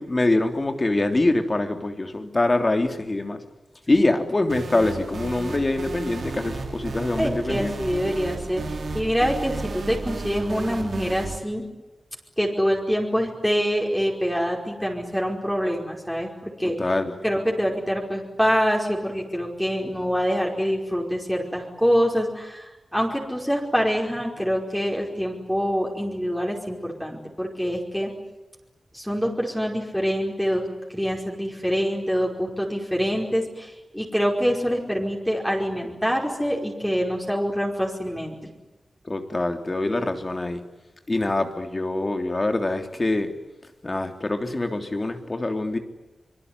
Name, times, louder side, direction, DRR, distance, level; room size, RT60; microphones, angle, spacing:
voice 1, 0.0-3.4 3.9-7.8 16.8-17.2 39.1-40.6 41.1-43.3 43.8-45.8, left 2 dB, 35° left, 6 dB, 3.4 m, -24 dB
sound 1, 4.5-11.4, right 3 dB, 80° right, 3.5 m, -33 dB
voice 2, 7.2-11.6 12.4-16.8 17.2-28.1 28.9-38.4, equal, 5° left, -1 dB, 5.2 m, -25 dB
25.5 x 23.0 x 9.8 m, 1.0 s
wide cardioid pair, 70°, 0 cm